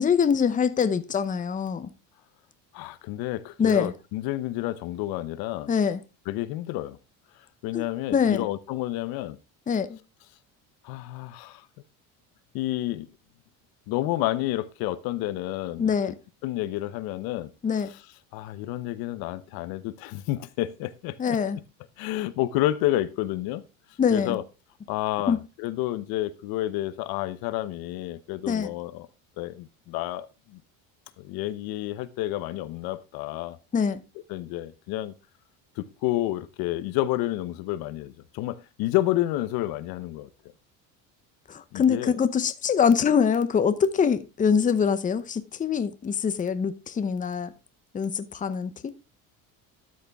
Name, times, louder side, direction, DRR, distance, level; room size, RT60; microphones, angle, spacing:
voice 1, 0.0-1.9 3.6-3.9 5.7-6.0 7.7-7.8 8.1-8.5 9.7-10.0 15.8-16.2 17.6-17.9 21.2-21.6 24.0-24.4 25.3-25.4 28.5-28.7 33.7-34.0 41.5-47.5 47.9-48.9, left 6 dB, 20° left, 0.8 m, -24 dB
voice 2, 2.7-5.7 6.3-7.0 7.6-9.4 10.8-11.7 12.5-13.1 13.9-15.9 16.4-17.5 18.3-21.4 22.0-23.6 24.1-24.4 24.9-29.1 29.4-30.6 31.2-33.6 34.3-35.1 35.8-40.3 41.7-42.2, left 15 dB, 75° left, 1.0 m, -30 dB
12.5 x 6.5 x 3.5 m
cardioid pair, 120°, 36 cm